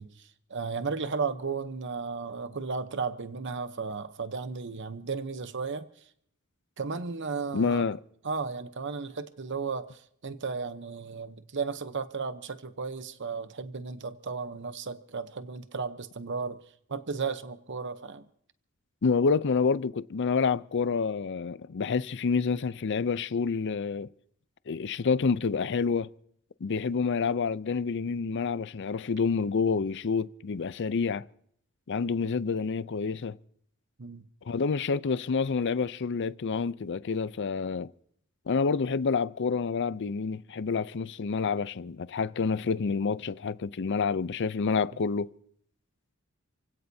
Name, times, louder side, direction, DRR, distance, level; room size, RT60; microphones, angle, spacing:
voice 1, 0.0-5.8 6.8-7.8 8.2-16.6 16.9-18.3 34.0-34.2, right 5 dB, 55° right, 0.8 m, -34 dB
voice 2, 7.5-8.0 19.0-24.1 24.7-26.1 26.6-31.3 31.9-33.4 34.5-37.9 38.5-45.3, left 5 dB, 55° left, 0.5 m, -28 dB
29.0 x 16.5 x 2.8 m
head